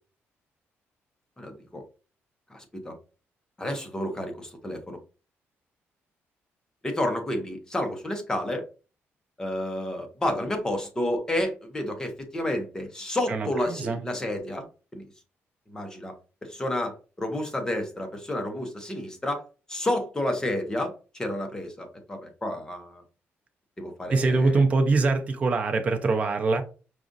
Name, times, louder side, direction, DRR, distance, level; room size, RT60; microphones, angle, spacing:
voice 1, 1.4-1.8 2.5-2.9 3.6-5.0 6.8-8.6 9.4-14.7 14.9-15.1 15.7-16.1 16.4-19.4 19.7-23.0 23.8-24.6, left 1 dB, 15° left, 0.8 m, -30 dB
voice 2, 13.3-14.0 24.1-26.6, right 3 dB, 30° right, 0.5 m, -23 dB
4.9 x 2.4 x 2.6 m
cardioid pair, 145°, 5 cm